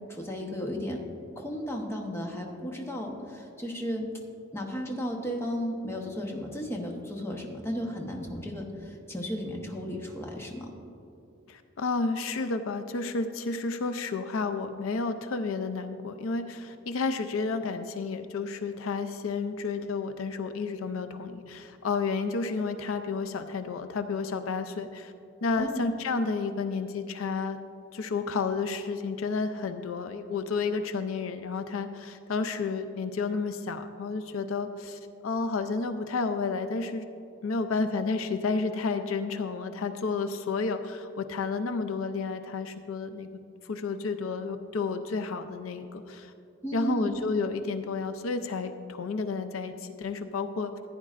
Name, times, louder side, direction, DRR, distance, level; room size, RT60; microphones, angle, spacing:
voice 1, 0.1-1.0 1.4-4.1 4.5-10.7 25.6-25.9 46.6-47.2, equal, 10° left, 1 dB, 1.0 m, -34 dB
voice 2, 11.5-25.1 25.4-27.6 27.9-37.1 37.4-43.3 43.6-46.3 46.7-50.9, left 4 dB, 80° left, 8 dB, 0.5 m, -31 dB
14.5 x 9.5 x 2.5 m, 2.7 s
head